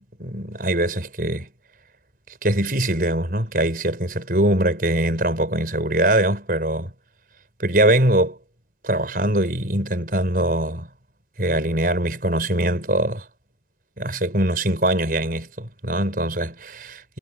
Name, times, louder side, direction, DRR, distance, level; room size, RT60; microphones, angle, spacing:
voice 1, 0.2-1.5 2.4-6.9 7.6-8.4 8.8-10.9 11.4-13.2 14.0-17.2, right 1 dB, 55° right, 6.0 m, -22 dB
head